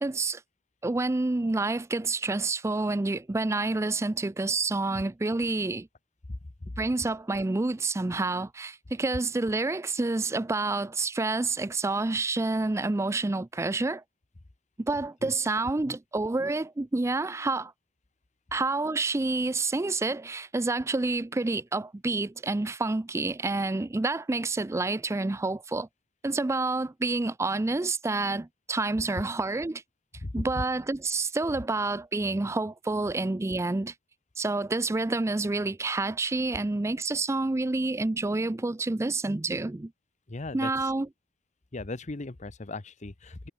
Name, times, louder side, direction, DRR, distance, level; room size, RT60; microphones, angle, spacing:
voice 1, 0.0-0.4 0.8-5.9 6.8-14.0 14.8-17.7 18.5-25.9 26.2-29.8 30.3-33.9 34.4-39.9 40.5-41.1, right 3 dB, 15° right, 0.4 m, -28 dB
voice 2, 6.3-6.8 15.2-15.3 15.8-16.0 30.2-30.6 40.3-40.9 41.7-43.5, left 2 dB, 40° left, 0.9 m, -37 dB
head